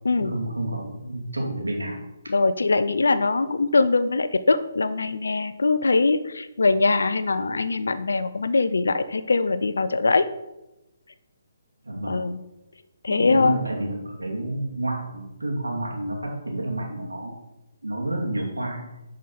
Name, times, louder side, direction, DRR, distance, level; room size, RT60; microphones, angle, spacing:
voice 1, 0.2-2.0 11.8-12.3 13.1-17.4 17.8-18.9, right 1 dB, 80° right, -1 dB, 2.6 m, -30 dB
voice 2, 2.3-10.2 12.1-12.4 13.0-13.6, left 3 dB, 70° left, 12 dB, 0.6 m, -22 dB
10.0 x 5.1 x 4.2 m, 0.95 s
figure-of-eight pair, 135°, 0 cm